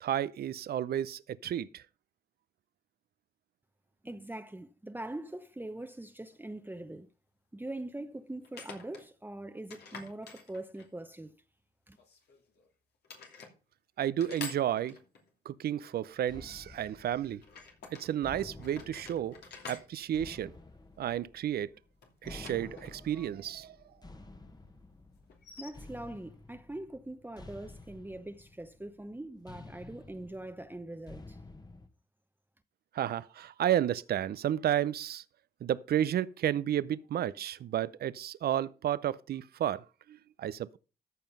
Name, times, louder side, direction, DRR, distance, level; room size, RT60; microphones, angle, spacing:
voice 1, 0.0-1.8 14.0-15.0 15.5-17.4 17.9-19.4 19.7-20.5 21.0-21.7 22.2-23.8 32.9-35.2 35.6-40.8, right 11 dB, 70° right, 0.6 m, -32 dB
voice 2, 4.0-7.1 7.5-11.4 11.9-12.0 25.6-31.4, right 1 dB, 10° right, 0.9 m, -42 dB
sound 1, 6.3-6.4 8.4-9.1 9.7-11.0 12.0-12.7 13.0-13.5 14.2-15.3 17.4-18.1 18.6-21.0 22.0-23.3 23.5-23.6 25.3-25.7, left 4 dB, 75° left, 2.8 m, -48 dB
sound 2, 16.3-31.9, left 2 dB, 25° left, 1.4 m, -51 dB
14.0 x 5.6 x 5.4 m
cardioid pair, 60°, 17 cm